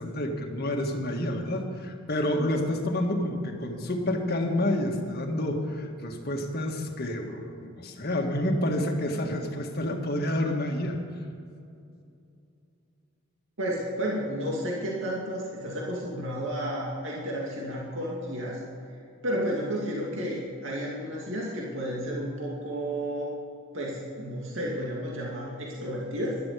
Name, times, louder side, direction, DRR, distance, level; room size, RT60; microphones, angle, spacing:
voice 1, 0.0-11.0, left 1 dB, 45° left, 2 dB, 1.7 m, -29 dB
voice 2, 13.6-18.6 19.2-23.3 23.7-26.4, equal, 60° right, -4 dB, 2.5 m, -32 dB
12.5 x 11.5 x 6.8 m, 2.5 s
head